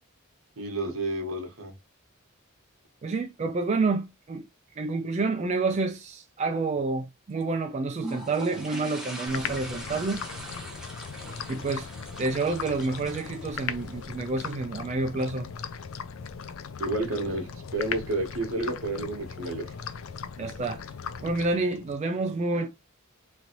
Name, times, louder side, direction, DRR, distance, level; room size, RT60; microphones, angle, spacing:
voice 1, 0.6-1.7 16.8-19.7, right 2 dB, 75° right, 1.0 m, -30 dB
voice 2, 3.0-4.5 4.8-10.2 11.5-11.9 12.2-15.5 20.4-20.8 21.2-22.7, right 3 dB, 35° right, 0.3 m, -28 dB
sound 1, 8.0-14.5, right 1 dB, 5° right, 0.7 m, -41 dB
sound 2, 9.3-22.0, left 6 dB, 70° left, 0.4 m, -38 dB
3.1 x 2.5 x 2.8 m
head